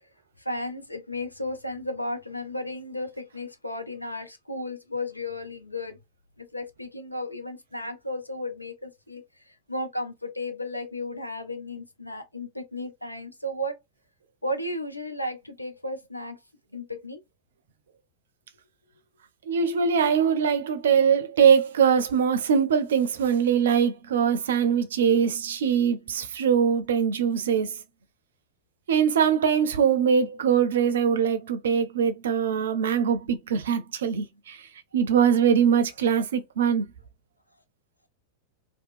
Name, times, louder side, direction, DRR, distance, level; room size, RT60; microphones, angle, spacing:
voice 1, 0.4-6.0 6.4-13.8 14.4-16.4 16.7-17.2, left 1 dB, 85° left, 0.5 m, -34 dB
voice 2, 19.5-27.8 28.9-34.6 34.9-36.9, right 7 dB, 60° right, 0.5 m, -22 dB
2.8 x 2.2 x 2.4 m
figure-of-eight pair, 90°, 0 cm